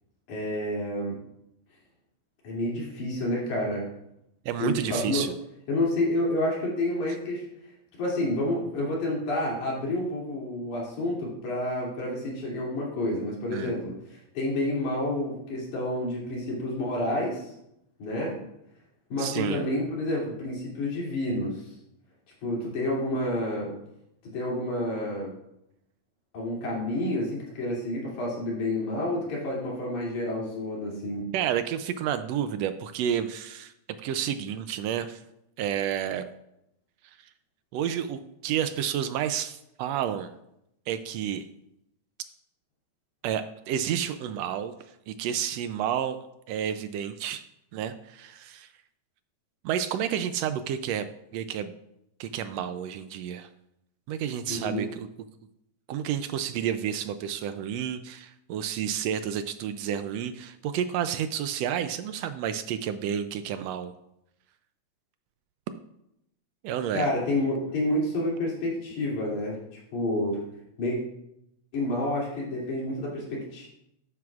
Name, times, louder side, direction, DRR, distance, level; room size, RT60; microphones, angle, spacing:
voice 1, 0.3-1.2 2.4-3.8 4.6-5.3 5.7-7.5 8.0-17.5 18.0-18.4 19.1-21.7 22.4-23.7 24.3-25.3 26.3-31.3 54.5-54.8 66.9-69.6 69.9-70.4 70.8-71.0 71.7-73.7, left 1 dB, 85° left, -4 dB, 4.1 m, -29 dB
voice 2, 4.4-5.3 13.5-13.7 19.2-19.7 31.3-33.7 34.0-35.2 35.6-36.2 37.0-37.2 37.7-40.3 40.9-41.5 43.2-44.7 45.1-46.2 46.5-47.4 47.7-48.7 49.6-51.1 51.3-51.7 52.2-53.5 54.1-55.1 55.9-63.9 66.6-67.1, right 9 dB, 80° right, 10 dB, 1.5 m, -30 dB
12.5 x 9.5 x 2.4 m, 0.81 s
omnidirectional pair, 3.4 m